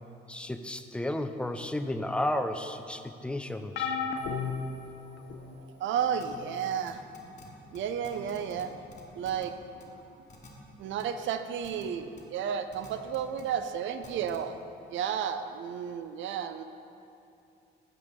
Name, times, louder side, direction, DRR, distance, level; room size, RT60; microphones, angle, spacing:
voice 1, 0.3-4.0, left 1 dB, 5° left, 8 dB, 0.4 m, -33 dB
sound 1, 3.8-5.6 6.3-6.6 7.8-7.9, left 5 dB, 80° left, 0.5 m, -34 dB
voice 2, 5.5-7.0 7.7-8.7 9.2-9.6 9.9-10.0 10.8-14.5 14.9-16.6, right 8 dB, 75° right, 9 dB, 0.4 m, -32 dB
sound 2, 6.2-6.3 6.9-7.5 7.7-7.8 8.0-8.6 8.9-9.5 9.8-9.9 10.3-10.5 11.0-11.1 11.6-11.8 12.2-12.3 12.7-13.4 14.0-14.4, left 3 dB, 40° left, 1.3 m, -49 dB
8.4 x 6.6 x 3.6 m, 2.7 s
cardioid pair, 90°, 20 cm